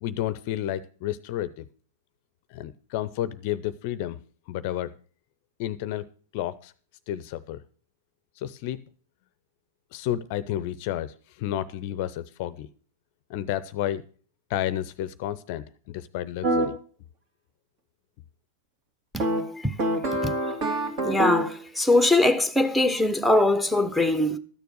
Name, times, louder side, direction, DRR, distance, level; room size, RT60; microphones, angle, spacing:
voice 1, 0.0-1.7 2.5-4.2 4.5-4.9 5.6-6.1 6.3-6.7 7.1-7.6 8.4-8.8 9.9-12.7 13.3-14.0 14.5-16.7, left 12 dB, 50° left, 0.6 m, -31 dB
sound 1, 16.4-16.7 19.2-21.6, right 1 dB, 45° right, 2.3 m, -26 dB
voice 2, 21.0-24.4, left 2 dB, ahead, 0.9 m, -22 dB
12.5 x 6.8 x 6.2 m
figure-of-eight pair, 95°, 0 cm